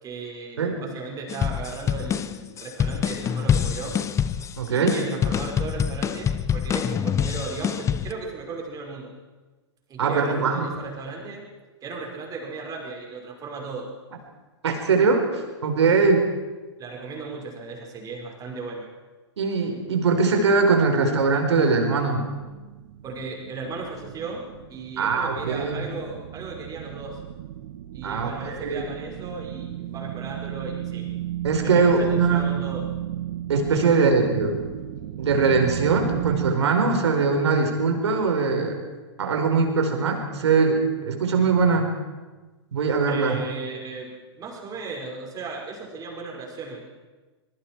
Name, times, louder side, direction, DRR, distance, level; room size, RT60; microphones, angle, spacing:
voice 1, 0.0-4.0 4.7-9.1 9.9-11.5 11.8-13.9 15.8-16.0 16.8-18.9 23.0-27.2 27.9-31.1 31.6-32.9 33.7-34.0 43.1-46.8, right 4 dB, 25° right, 0 dB, 5.5 m, -36 dB
sound 1, 1.3-8.1, left 8 dB, 20° left, 0.9 m, -26 dB
voice 2, 4.6-5.0 10.0-10.7 14.6-16.2 19.4-22.2 25.0-25.7 28.0-28.8 31.4-32.6 33.5-34.6 35.2-38.8 39.2-41.9 42.7-43.4, right 4 dB, 70° right, 4 dB, 4.6 m, -21 dB
sound 2, 22.4-36.5, right 13 dB, 55° right, 1.4 m, -34 dB
25.0 x 22.0 x 4.7 m, 1.3 s
hypercardioid pair, 110°, 15 cm